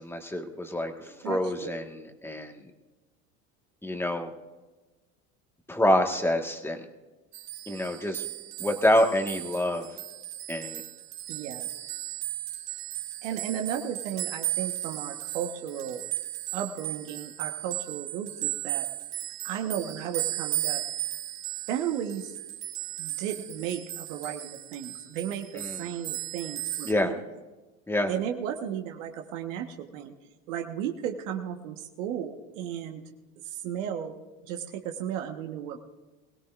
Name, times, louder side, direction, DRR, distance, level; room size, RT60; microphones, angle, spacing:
voice 1, 0.0-2.6 3.8-4.3 5.7-6.8 7.7-8.2 8.6-9.9 10.5-10.8 25.5-25.9 26.8-27.1 27.9-28.1, left 1 dB, 5° left, 4 dB, 1.6 m, -27 dB
voice 2, 1.2-1.8 11.3-11.7 13.2-16.0 16.5-18.8 19.4-20.8 21.7-22.3 23.0-27.1 28.1-30.1 30.5-33.0 33.4-34.1 34.4-35.8, right 9 dB, 75° right, 3 dB, 1.4 m, -34 dB
sound 1, 7.3-26.9, right 15 dB, 60° right, 2.7 m, -36 dB
21.5 x 17.0 x 2.5 m, 1.2 s
supercardioid pair, 100°, 38 cm